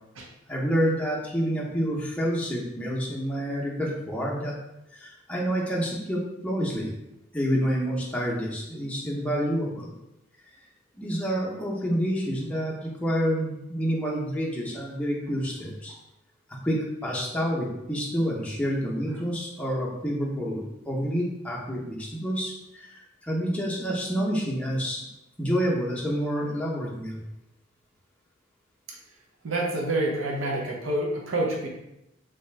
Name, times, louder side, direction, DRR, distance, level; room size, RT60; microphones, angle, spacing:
voice 1, 0.5-4.5 4.9-6.9 7.3-10.0 11.0-15.9 16.6-25.0 25.4-27.2, equal, 5° left, -4 dB, 0.6 m, -28 dB
voice 2, 29.4-31.7, right 1 dB, 70° right, -1 dB, 0.6 m, -27 dB
3.3 x 2.7 x 3.2 m, 0.89 s
head